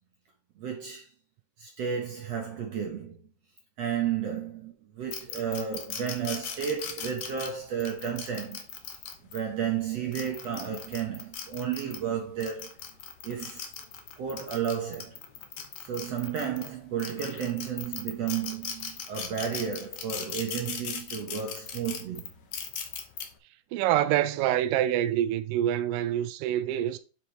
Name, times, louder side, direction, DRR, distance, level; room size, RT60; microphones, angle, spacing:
voice 1, 0.6-1.1 1.6-3.2 3.8-8.7 9.3-12.7 13.2-13.7 14.2-15.2 15.8-22.3, right 8 dB, 60° right, 1.9 m, -32 dB
sound 1, 5.1-9.4 10.0-12.0 12.4-16.7 17.0-23.2, left 7 dB, 75° left, 1.3 m, -38 dB
voice 2, 23.7-27.0, right 12 dB, 75° right, 2.1 m, -26 dB
9.6 x 4.9 x 3.4 m
omnidirectional pair, 4.3 m